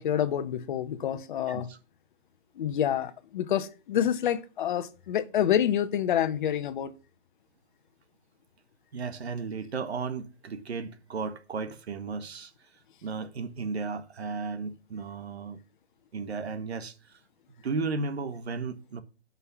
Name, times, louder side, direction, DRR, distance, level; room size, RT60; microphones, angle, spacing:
voice 1, 0.0-1.7 2.6-6.9, left 10 dB, 45° left, 1.1 m, -27 dB
voice 2, 1.5-1.8 8.9-12.5 13.0-15.6 16.1-17.1 17.6-19.0, right 4 dB, 65° right, 1.6 m, -34 dB
11.0 x 5.7 x 6.1 m
hypercardioid pair, 135°, 34 cm